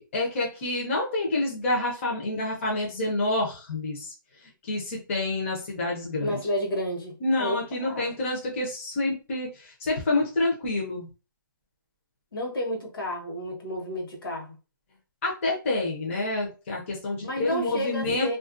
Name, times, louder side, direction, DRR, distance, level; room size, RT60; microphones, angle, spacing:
voice 1, 0.0-4.1 4.6-6.4 7.2-11.1 15.2-18.3, left 2 dB, 35° left, -2 dB, 0.6 m, -28 dB
voice 2, 6.2-8.2 12.3-14.5 17.2-18.4, equal, 70° left, 0 dB, 1.1 m, -31 dB
2.4 x 2.2 x 2.4 m, 0.32 s
hypercardioid pair, 170°, 12 cm